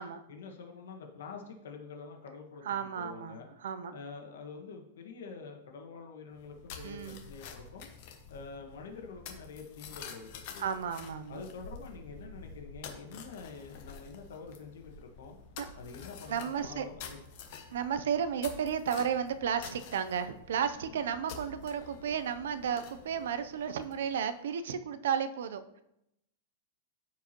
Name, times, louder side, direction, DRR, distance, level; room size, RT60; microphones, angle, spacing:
voice 1, 0.3-3.5 3.9-7.9 8.3-10.7 11.3-15.4 15.7-17.2 20.8-21.0, left 5 dB, 80° left, 2 dB, 1.6 m, -47 dB
voice 2, 2.7-4.0 6.8-7.2 10.6-11.4 15.6-15.7 16.3-16.9 17.7-25.8, right 8 dB, 75° right, 11 dB, 0.6 m, -33 dB
sound 1, 6.3-24.2, left 5 dB, 40° left, 1.0 m, -49 dB
14.0 x 4.7 x 3.0 m, 0.82 s
supercardioid pair, 175°, 0 cm